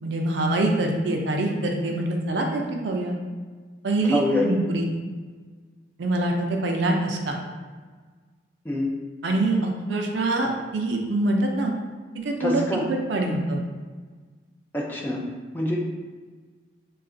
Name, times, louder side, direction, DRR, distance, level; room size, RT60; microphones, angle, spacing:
voice 1, 0.0-3.1 3.8-4.9 6.0-7.4 9.2-11.7 12.1-12.6 12.9-13.6, right 2 dB, 75° right, 2 dB, 0.5 m, -24 dB
voice 2, 4.1-4.5 8.7-8.9 12.4-12.8 13.2-13.3 14.7-15.2 15.5-15.8, left 1 dB, 10° left, -3 dB, 0.4 m, -25 dB
3.2 x 2.4 x 3.7 m, 1.5 s
head